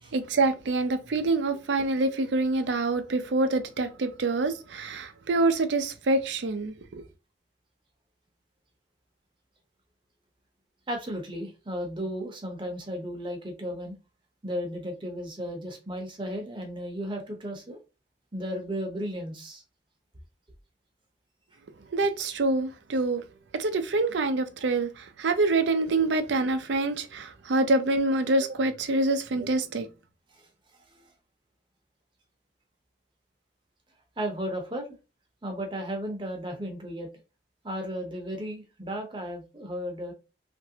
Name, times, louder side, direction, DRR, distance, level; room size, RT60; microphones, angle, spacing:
voice 1, 0.1-7.0 21.9-23.2 23.5-29.9, right 2 dB, 80° right, 0.5 m, -26 dB
voice 2, 10.9-14.0 14.4-17.8 18.3-19.6 30.3-30.5 30.9-31.1 34.2-34.9 35.4-37.1 37.6-40.1, equal, 25° right, 0.7 m, -34 dB
3.0 x 2.5 x 2.7 m
head